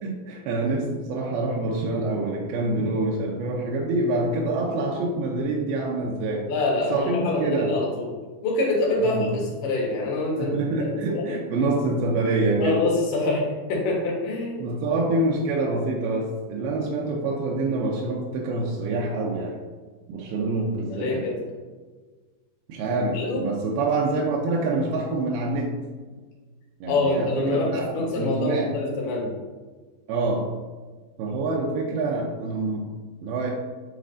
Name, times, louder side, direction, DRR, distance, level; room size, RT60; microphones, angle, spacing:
voice 1, 0.0-6.5 6.9-7.8 9.0-9.4 10.4-12.9 14.6-19.6 20.1-21.3 22.7-25.8 26.8-28.8 30.1-30.5 31.2-32.9 33.2-33.5, right 2 dB, 85° right, -2 dB, 2.6 m, -26 dB
voice 2, 6.5-8.1 8.4-9.2 9.6-10.5 10.9-11.4 12.6-14.7 20.9-21.4 23.1-23.4 26.9-29.3, left 2 dB, 85° left, -2 dB, 3.3 m, -25 dB
9.3 x 4.2 x 2.6 m, 1.4 s
omnidirectional pair, 4.3 m